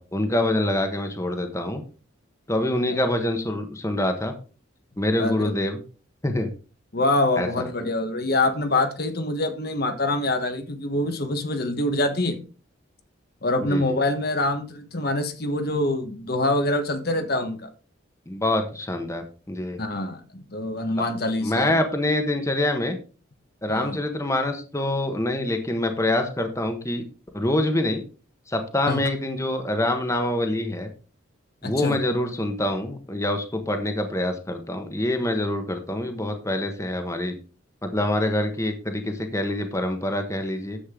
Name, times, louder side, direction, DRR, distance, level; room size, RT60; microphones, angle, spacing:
voice 1, 0.0-1.8 2.5-4.3 5.0-5.8 6.2-6.5 7.4-7.6 13.6-13.8 18.3-19.8 21.4-23.0 23.6-27.0 27.3-28.0 28.5-30.9 31.6-37.4 37.8-40.8, left 1 dB, 15° left, 6 dB, 1.3 m, -25 dB
voice 2, 6.9-12.4 13.4-17.7 19.8-21.8 23.7-24.0 28.9-29.0 31.6-32.0, left 2 dB, 50° left, 7 dB, 1.2 m, -25 dB
10.0 x 7.8 x 3.8 m, 0.36 s
head